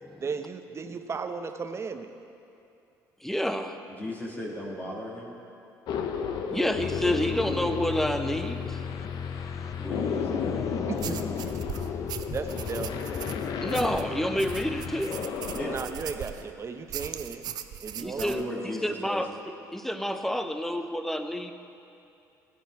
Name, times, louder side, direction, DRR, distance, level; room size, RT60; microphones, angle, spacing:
voice 1, 0.2-2.1 10.9-11.5 12.3-13.1 15.6-17.5 17.8-18.5, right 5 dB, 35° right, 8 dB, 0.9 m, -35 dB
voice 2, 3.2-3.8 6.5-8.8 13.6-15.2 18.0-21.5, equal, 5° left, 7 dB, 0.9 m, -29 dB
voice 3, 4.0-5.4 9.8-10.7 15.5-15.8 18.0-19.2, left 1 dB, 20° left, -4 dB, 2.3 m, -36 dB
sound 1, 5.9-15.8, left 6 dB, 65° left, 0.9 m, -34 dB
sound 2, 6.8-15.3, left 7 dB, 40° left, 0.5 m, -37 dB
sound 3, 11.0-16.5 16.9-18.4, right 10 dB, 60° right, 0.6 m, -39 dB
15.5 x 9.4 x 4.7 m, 2.6 s
supercardioid pair, 70°, 8 cm